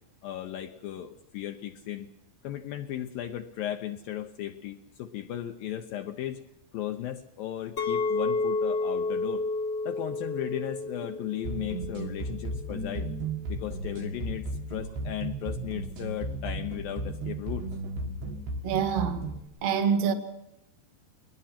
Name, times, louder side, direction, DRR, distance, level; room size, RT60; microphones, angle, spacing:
voice 1, 0.2-2.1 2.4-6.4 6.7-9.5 9.9-13.1 13.5-17.6, left 12 dB, 75° left, 2.2 m, -36 dB
Chink clink, 7.8-12.9, left 3 dB, 35° left, 1.0 m, -31 dB
sound 1, 11.5-19.5, right 2 dB, 70° right, 4.1 m, -35 dB
voice 2, 18.6-19.3 19.6-20.1, right 7 dB, 50° right, 2.1 m, -25 dB
21.5 x 21.0 x 5.9 m
omnidirectional pair, 4.9 m